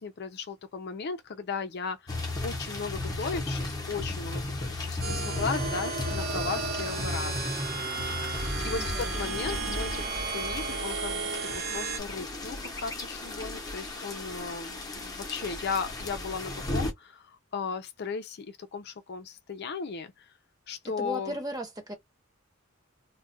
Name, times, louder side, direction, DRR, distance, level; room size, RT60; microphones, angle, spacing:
voice 1, 0.0-7.3 8.6-20.1 20.7-21.4, left 5 dB, 55° left, 0.5 m, -36 dB
sound 1, 2.1-16.9, left 2 dB, 20° left, 0.8 m, -35 dB
sound 2, 5.0-12.0, right 4 dB, 50° right, 1.0 m, -34 dB
voice 2, 8.7-9.3 21.0-21.9, right 1 dB, 20° right, 0.9 m, -37 dB
2.3 x 2.2 x 3.8 m
head